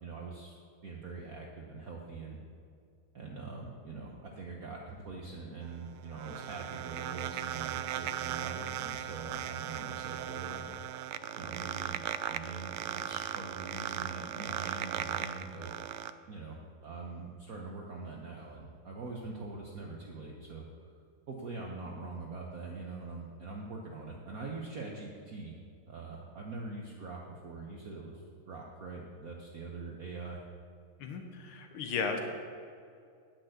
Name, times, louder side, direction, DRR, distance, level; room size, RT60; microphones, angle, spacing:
voice 1, 0.0-0.6 0.8-2.4 3.1-10.7 11.3-15.7 16.3-16.6 16.8-20.9 21.3-25.6 25.9-30.5, right 3 dB, 50° right, -1 dB, 1.2 m, -43 dB
sound 1, 5.6-16.1, right 11 dB, 80° right, 1.4 m, -38 dB
voice 2, 31.0-32.2, left 5 dB, 80° left, 4 dB, 1.9 m, -35 dB
10.5 x 6.1 x 7.9 m, 2.3 s
omnidirectional pair, 2.3 m